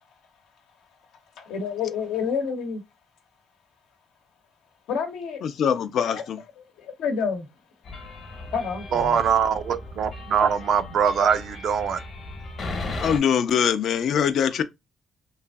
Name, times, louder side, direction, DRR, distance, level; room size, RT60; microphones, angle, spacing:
voice 1, 1.4-2.8 4.9-5.4 6.1-6.2 6.8-7.5 8.5-9.2, left 6 dB, 90° left, 0.8 m, -28 dB
voice 2, 5.4-6.4 13.0-14.6, left 8 dB, 70° left, 0.4 m, -23 dB
sound 1, 7.8-13.2, left 2 dB, 55° left, 0.9 m, -36 dB
voice 3, 8.9-12.0, right 7 dB, 65° right, 0.4 m, -22 dB
3.1 x 2.5 x 2.2 m
cardioid pair, 90°, 0 cm